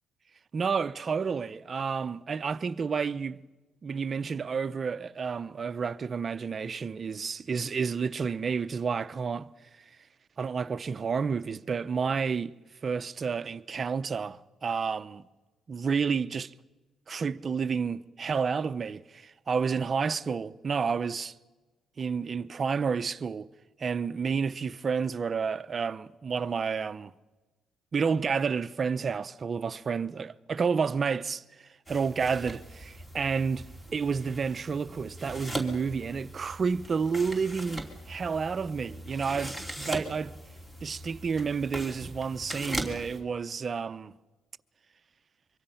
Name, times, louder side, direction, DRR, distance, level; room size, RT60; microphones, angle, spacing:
voice 1, 0.5-3.4 3.8-9.5 10.4-12.5 12.8-15.2 15.7-16.5 17.1-21.3 22.0-23.5 23.8-27.1 27.9-33.7 33.9-40.3 40.8-44.1, right 5 dB, 40° right, 0.6 m, -30 dB
sound 1, 31.9-43.2, right 1 dB, 10° left, 2.9 m, -40 dB
24.5 x 24.0 x 5.7 m
cardioid pair, 90°, 0 cm